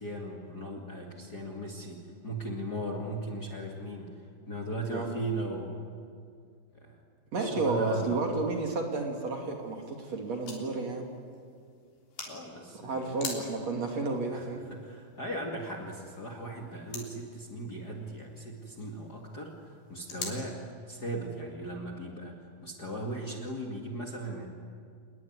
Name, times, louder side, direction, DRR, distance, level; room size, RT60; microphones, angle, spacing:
voice 1, 0.0-4.1 4.5-5.8 6.7-7.0 7.4-8.1 12.3-13.0 14.3-24.5, right 1 dB, 30° left, 0 dB, 2.3 m, -38 dB
voice 2, 7.3-11.1 12.8-14.6, right 3 dB, 50° right, 2 dB, 3.4 m, -31 dB
sound 1, 9.4-20.4, left 4 dB, 70° left, 5.2 m, -47 dB
27.5 x 20.5 x 9.6 m, 2.2 s
omnidirectional pair, 4.2 m